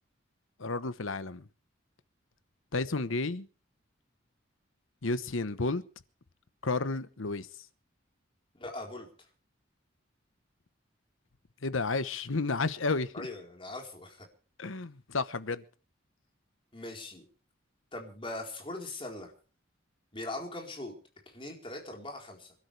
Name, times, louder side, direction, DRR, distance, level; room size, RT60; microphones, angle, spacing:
voice 1, 0.6-1.5 2.7-3.5 5.0-5.8 6.6-7.5 11.6-13.3 14.6-15.6, left 3 dB, 85° left, 1.1 m, -31 dB
voice 2, 8.5-9.1 13.1-14.3 16.7-17.3 17.9-19.3 20.1-20.9 21.3-22.5, left 2 dB, 25° left, 4.1 m, -41 dB
26.5 x 12.5 x 3.4 m
head